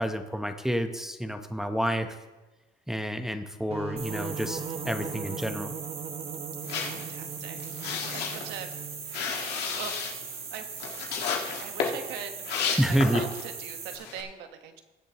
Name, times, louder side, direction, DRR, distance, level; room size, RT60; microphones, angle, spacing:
voice 1, 0.0-2.1 2.9-5.7 12.8-13.2, equal, 5° right, 6 dB, 0.8 m, -29 dB
sound 1, 3.7-9.2, right 5 dB, 35° right, 0.9 m, -39 dB
sound 2, 4.0-14.0, right 6 dB, 60° right, 2.3 m, -40 dB
sound 3, 6.6-13.5 13.9-14.2, left 6 dB, 80° left, 1.7 m, -33 dB
voice 2, 6.7-7.6 8.1-8.7 9.4-10.1 10.5-10.7 11.1-11.2 11.6-14.8, right 8 dB, 90° right, 7 dB, 1.2 m, -42 dB
21.0 x 7.4 x 2.9 m, 1.1 s
cardioid pair, 110°, 17 cm